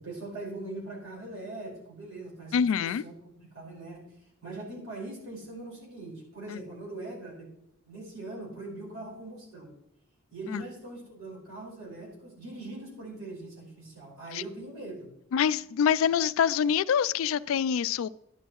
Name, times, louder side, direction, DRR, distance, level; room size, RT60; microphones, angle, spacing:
voice 1, 0.0-4.1 4.4-7.5 7.8-9.7 10.3-15.1 16.0-16.1, right 2 dB, 75° right, 4.8 m, -41 dB
voice 2, 2.5-3.0 6.5-6.6 10.5-10.6 14.3-14.4 15.3-18.1, left 7 dB, 70° left, 0.3 m, -25 dB
11.0 x 11.0 x 3.1 m
head